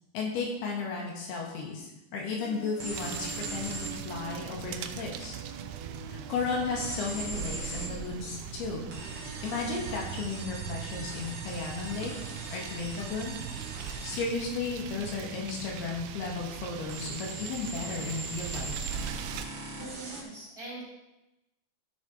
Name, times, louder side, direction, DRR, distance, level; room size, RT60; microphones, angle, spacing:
voice 1, 0.1-5.3 6.1-12.1 12.5-13.4 13.8-18.8, left 4 dB, 80° left, -1 dB, 3.8 m, -34 dB
Human voice, 2.4-10.4, right 7 dB, 70° right, 2.1 m, -47 dB
sound 1, 2.8-4.0 6.8-7.9 8.9-14.3 16.9-20.2, right 2 dB, 40° right, 1.8 m, -40 dB
sound 2, 2.9-19.5, right 9 dB, 90° right, 2.6 m, -40 dB
voice 2, 19.8-20.8, right 2 dB, 25° right, -7 dB, 3.6 m, -43 dB
13.5 x 6.5 x 4.5 m, 0.98 s
omnidirectional pair, 4.5 m